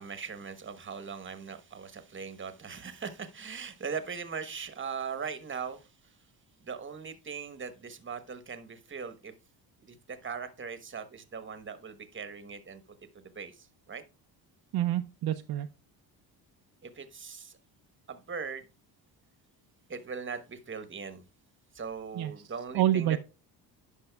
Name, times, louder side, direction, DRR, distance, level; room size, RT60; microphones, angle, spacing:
voice 1, 0.0-6.2 6.6-9.3 9.8-12.8 13.1-14.0 16.8-17.6 18.1-18.7 19.9-21.2 21.7-23.2, right 6 dB, 25° right, 11 dB, 1.1 m, -40 dB
voice 2, 14.7-15.7 22.1-22.3 22.7-23.2, right 12 dB, 55° right, 8 dB, 0.5 m, -27 dB
10.5 x 5.4 x 2.2 m, 0.30 s
cardioid pair, 90°, 44 cm